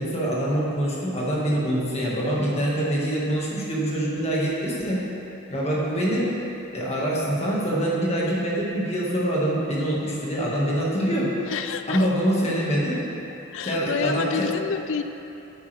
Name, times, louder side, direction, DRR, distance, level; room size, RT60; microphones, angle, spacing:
voice 1, 0.0-5.0 5.5-6.3 6.7-11.3 11.9-13.0 13.6-14.5, right 1 dB, 30° left, -5 dB, 1.7 m, -25 dB
voice 2, 11.5-12.1 13.5-15.0, left 6 dB, 65° left, 9 dB, 0.4 m, -28 dB
10.5 x 8.4 x 3.4 m, 2.9 s
head